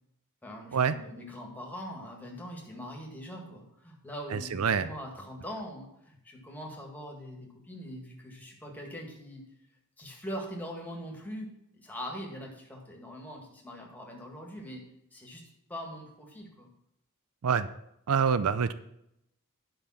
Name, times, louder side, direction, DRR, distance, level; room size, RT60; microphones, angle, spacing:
voice 1, 0.4-9.4 10.0-14.8 15.1-15.4 15.7-16.7, equal, 10° left, 0 dB, 1.9 m, -42 dB
voice 2, 4.3-4.9 17.4-17.7 18.1-18.7, right 6 dB, 70° right, 14 dB, 0.5 m, -26 dB
10.5 x 5.3 x 5.8 m, 0.79 s
head